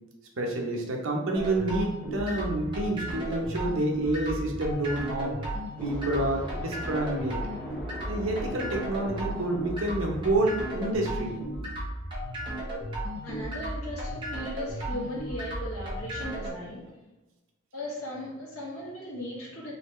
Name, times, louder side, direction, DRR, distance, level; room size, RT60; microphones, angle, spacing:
voice 1, 0.4-5.4 5.8-7.5 8.0-11.5, right 2 dB, 70° right, 0 dB, 0.9 m, -28 dB
sound 1, 1.3-16.5, equal, 25° right, 1.0 m, -35 dB
sound 2, 5.8-11.4, equal, 5° left, 0.7 m, -42 dB
voice 2, 13.2-16.9 17.7-19.7, left 1 dB, 85° left, -4 dB, 1.4 m, -37 dB
4.0 x 3.2 x 3.1 m, 1.1 s
head